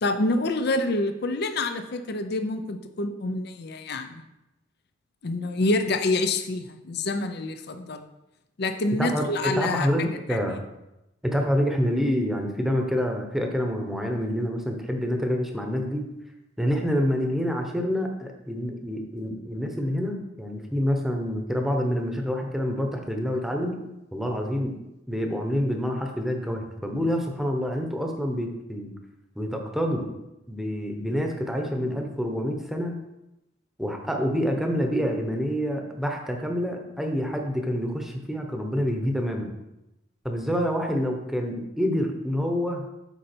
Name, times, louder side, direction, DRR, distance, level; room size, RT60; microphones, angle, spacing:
voice 1, 0.0-4.2 5.2-8.1 8.6-10.4, left 2 dB, 55° left, 8 dB, 0.6 m, -27 dB
voice 2, 9.0-10.6 11.2-16.1 16.6-23.8 24.1-24.7 25.1-28.9 29.4-30.1 30.5-33.0 33.8-39.5 40.2-42.9, equal, ahead, 2 dB, 0.9 m, -27 dB
8.1 x 5.4 x 4.4 m, 0.92 s
head